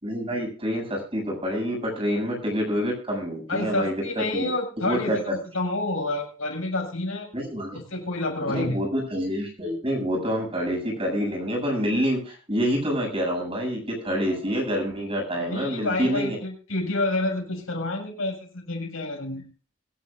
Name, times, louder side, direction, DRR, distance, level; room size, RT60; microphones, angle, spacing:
voice 1, 0.0-4.5 4.8-5.4 7.3-7.8 8.5-16.4, equal, 25° right, 0 dB, 7.8 m, -27 dB
voice 2, 3.5-7.3 7.7-8.8 15.4-19.4, left 2 dB, 80° left, 2 dB, 6.3 m, -29 dB
23.5 x 11.5 x 2.6 m, 0.38 s
head